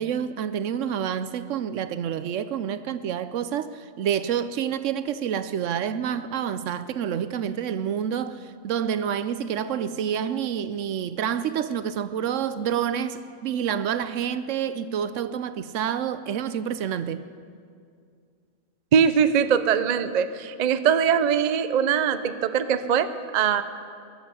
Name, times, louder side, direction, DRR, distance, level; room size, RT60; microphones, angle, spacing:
voice 1, 0.0-17.3, right 8 dB, 75° right, 0.9 m, -28 dB
voice 2, 18.9-23.6, right 7 dB, 50° right, 0.5 m, -22 dB
21.5 x 8.0 x 7.0 m
omnidirectional pair, 1.4 m